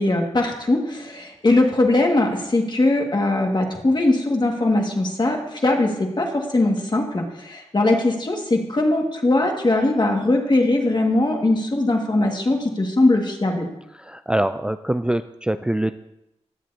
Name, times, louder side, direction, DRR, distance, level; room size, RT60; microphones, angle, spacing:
voice 1, 0.0-13.7, left 2 dB, 40° left, 1 dB, 2.0 m, -20 dB
voice 2, 13.9-15.9, right 1 dB, 10° right, 10 dB, 0.4 m, -24 dB
18.0 x 7.6 x 2.9 m, 0.90 s
cardioid pair, 45°, 12 cm